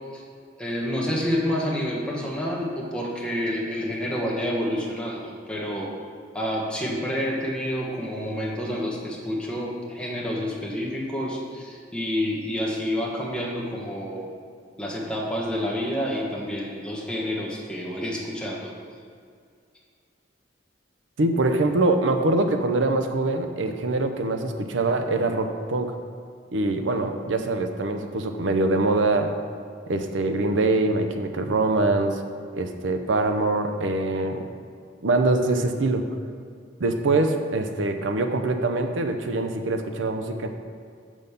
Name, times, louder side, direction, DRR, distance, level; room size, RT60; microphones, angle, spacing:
voice 1, 0.6-5.9 6.3-14.3 14.8-18.7, equal, 5° left, -3 dB, 1.3 m, -28 dB
voice 2, 21.2-25.9 26.5-29.4 29.9-32.2 32.5-34.5 35.0-36.1 36.8-40.5, right 2 dB, 90° right, 6 dB, 0.6 m, -24 dB
6.2 x 5.3 x 6.8 m, 2.2 s
head